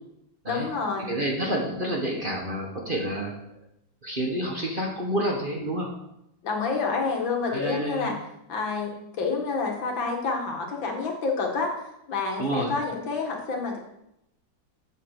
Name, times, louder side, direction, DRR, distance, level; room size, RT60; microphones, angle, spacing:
voice 1, 0.5-1.1 6.4-8.2 8.5-8.9 9.2-13.8, left 4 dB, 70° left, 1 dB, 2.5 m, -28 dB
voice 2, 1.1-3.3 4.0-5.9 7.5-8.1 12.4-12.7, right 1 dB, 30° right, -1 dB, 1.6 m, -28 dB
7.8 x 7.4 x 6.6 m, 0.82 s
omnidirectional pair, 2.1 m